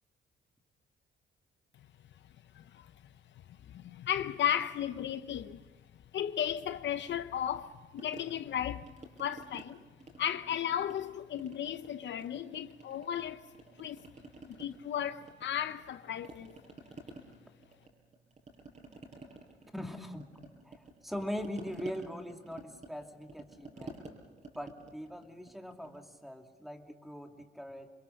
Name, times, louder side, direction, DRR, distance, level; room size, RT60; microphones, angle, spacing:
voice 1, 2.5-2.9 3.7-5.6 6.1-8.9 9.2-9.8 10.2-13.4 13.8-14.0 14.5-16.6, left 10 dB, 65° left, 0.8 m, -35 dB
sound 1, 8.0-9.7 10.0-11.1 11.4-13.2 13.5-15.9 16.2-26.1, right 2 dB, 35° right, 5.9 m, -51 dB
voice 2, 19.7-20.2 20.6-24.0 24.5-27.9, equal, ahead, 2.7 m, -41 dB
28.0 x 22.0 x 6.6 m
cardioid pair, 90°, 20 cm